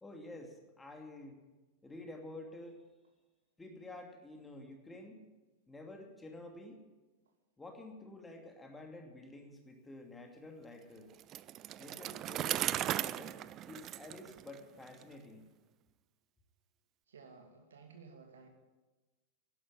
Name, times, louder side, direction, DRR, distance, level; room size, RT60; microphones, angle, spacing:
voice 1, 0.0-1.4 1.8-2.8 3.6-5.3 5.7-6.8 7.6-11.1 11.8-15.5, left 2 dB, 10° left, 3 dB, 2.6 m, -50 dB
Bicycle, 11.2-15.0, right 13 dB, 35° right, 0.5 m, -37 dB
voice 2, 17.1-18.5, right 5 dB, 65° right, 4 dB, 2.5 m, -55 dB
12.0 x 11.0 x 9.9 m, 1.2 s
figure-of-eight pair, 90°, 0 cm